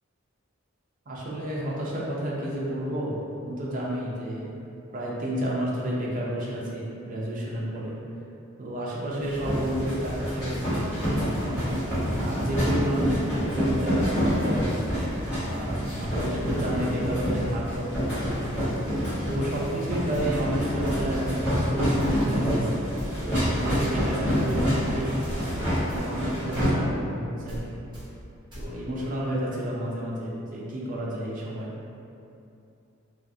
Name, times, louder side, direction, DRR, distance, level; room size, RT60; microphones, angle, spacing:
voice 1, 1.1-4.6 4.9-8.0 8.6-10.9 11.2-12.0 12.2-15.1 15.4-18.4 19.2-22.9 23.2-25.2 25.8-27.6 28.6-31.7, right 1 dB, 40° right, -5 dB, 0.4 m, -31 dB
sound 1, 9.2-26.7, equal, 10° left, 1.3 m, -27 dB
sound 2, 20.1-20.3 20.9-21.1 22.0-22.2 23.0-23.1 23.7-23.8 24.5-24.7 25.2-25.4 25.9-26.1 26.5-26.7 27.5-27.6 27.9-28.1 28.5-28.7, equal, 20° right, 0.8 m, -37 dB
2.4 x 2.3 x 2.5 m, 2.6 s
head